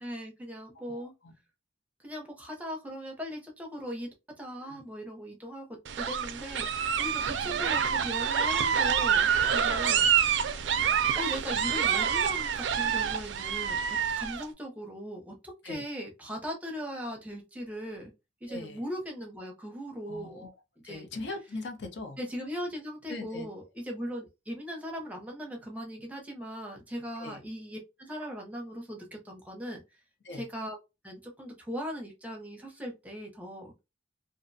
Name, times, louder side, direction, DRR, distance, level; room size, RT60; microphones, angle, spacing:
voice 1, 0.0-1.1 2.0-4.1 4.4-10.1 11.1-15.4 15.6-18.1 18.4-20.4 20.8-21.1 22.2-29.8 30.3-30.8 31.0-33.7, equal, 10° right, 0.6 m, -39 dB
voice 2, 0.9-1.3 4.6-4.8 9.5-9.8 15.6-15.9 18.5-18.8 20.1-20.5 20.8-22.2 23.1-23.7 27.2-27.4 30.2-30.4, left 2 dB, 70° left, 0.6 m, -41 dB
sound 1, 5.8-14.4, right 7 dB, 80° right, 0.4 m, -27 dB
2.5 x 2.1 x 2.6 m
head